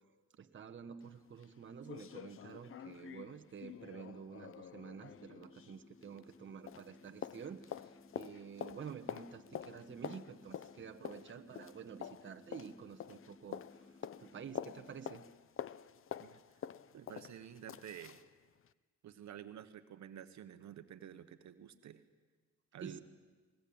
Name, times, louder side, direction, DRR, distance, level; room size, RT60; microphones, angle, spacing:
voice 1, 0.4-13.6 14.2-15.2 22.8-23.0, right 7 dB, 40° right, 6 dB, 1.3 m, -49 dB
sound 1, 1.0-1.1 1.4-1.5 1.8-6.4 6.7-18.3 18.6-18.7, left 9 dB, 45° left, 0.7 m, -48 dB
sound 2, 5.0-15.0, left 3 dB, 10° left, 0.9 m, -61 dB
voice 2, 16.9-18.2 19.0-22.0 22.7-23.0, right 10 dB, 65° right, 10 dB, 1.2 m, -50 dB
21.5 x 20.0 x 8.8 m, 1.4 s
cardioid pair, 90°, 30 cm